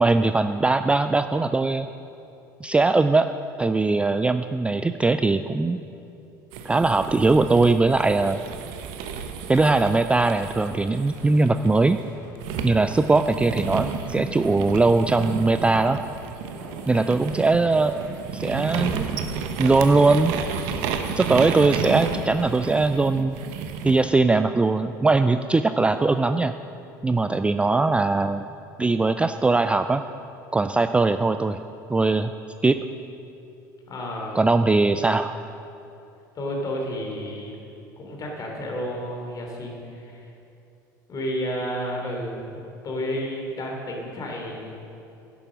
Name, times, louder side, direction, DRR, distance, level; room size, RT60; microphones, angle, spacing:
voice 1, 0.0-1.9 2.6-3.3 3.6-5.8 6.6-8.4 9.5-12.0 12.6-16.0 16.9-18.0 18.3-19.1 19.6-20.3 21.2-23.3 23.8-26.5 27.0-28.5 28.8-30.0 30.5-31.6 31.9-32.3 32.6-32.8 34.3-35.3, right 3 dB, 10° right, 9 dB, 0.4 m, -20 dB
sound 1, 6.5-11.9 12.4-24.0, right 6 dB, 60° right, 1.0 m, -32 dB
Walk footsteps, 10.3-20.3, right 1 dB, 85° right, 2.5 m, -46 dB
voice 2, 16.9-17.3 30.8-31.0 33.9-34.4 36.3-37.5 38.0-40.3 41.1-42.5 42.8-44.7, equal, 35° left, 0 dB, 3.2 m, -31 dB
11.5 x 8.8 x 6.1 m, 2.8 s
hypercardioid pair, 70°, 11 cm